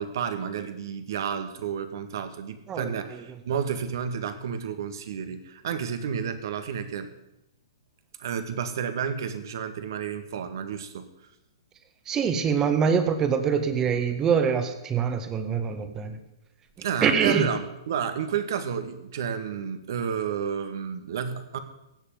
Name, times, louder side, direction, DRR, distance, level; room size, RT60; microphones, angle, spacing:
voice 1, 0.0-7.1 8.2-11.1 16.8-21.6, right 7 dB, 55° right, 9 dB, 1.8 m, -31 dB
voice 2, 12.1-16.2 17.0-17.5, right 6 dB, 20° right, 7 dB, 1.7 m, -24 dB
16.5 x 6.9 x 9.4 m, 0.89 s
figure-of-eight pair, 115°, 2 cm